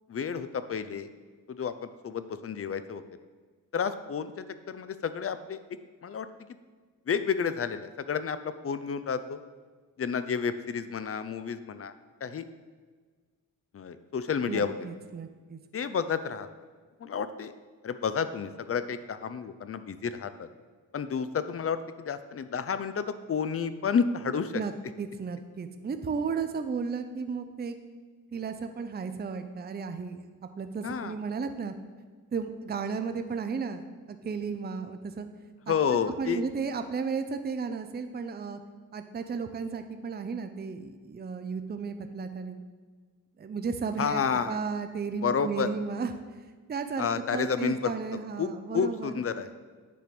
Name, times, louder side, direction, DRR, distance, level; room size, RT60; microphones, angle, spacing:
voice 1, 0.1-1.1 1.5-3.0 3.7-5.6 6.0-6.3 7.1-9.4 10.0-11.9 12.2-12.4 13.7-14.7 15.7-16.5 17.0-17.5 17.8-20.5 20.9-24.5 30.8-31.1 35.7-36.4 44.0-44.6 45.2-45.7 47.0-47.9 48.4-48.5 48.7-49.5, left 6 dB, 40° left, 12 dB, 0.5 m, -30 dB
voice 2, 14.5-15.6 24.5-24.7 25.0-27.8 28.3-30.3 30.6-31.7 32.3-35.3 35.7-35.8 36.2-38.6 38.9-42.6 43.4-46.1 46.7-49.2, right 5 dB, 30° right, 8 dB, 0.5 m, -34 dB
8.4 x 3.5 x 5.9 m, 1.5 s
cardioid pair, 65°, 35 cm